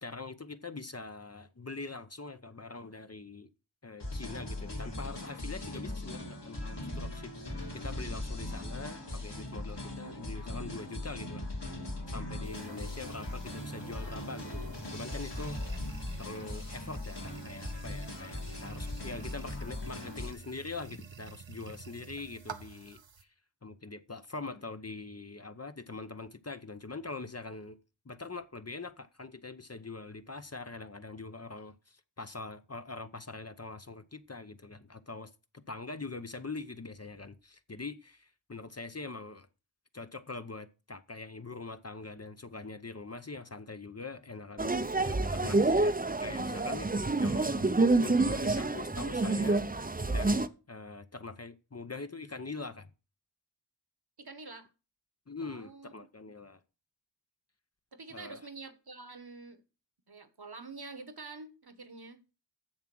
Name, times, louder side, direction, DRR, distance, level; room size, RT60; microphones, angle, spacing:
voice 1, 0.0-3.5 3.8-11.5 12.1-15.6 16.2-23.3 23.6-27.8 28.0-39.5 39.9-47.7 48.0-52.9 55.3-56.6 58.1-58.5, left 3 dB, 35° left, 0.7 m, -43 dB
sound 1, 4.0-20.3, left 1 dB, 60° left, 2.9 m, -39 dB
voice 2, 9.9-10.3 54.2-54.7 55.4-55.9 56.2-56.3 57.9-59.6 60.1-62.2, right 3 dB, 55° right, 1.2 m, -47 dB
sound 2, 12.4-23.2, right 6 dB, 80° right, 1.0 m, -50 dB
sound 3, 44.6-50.5, right 2 dB, 20° right, 0.6 m, -28 dB
7.4 x 7.2 x 6.1 m
wide cardioid pair, 50°, 45 cm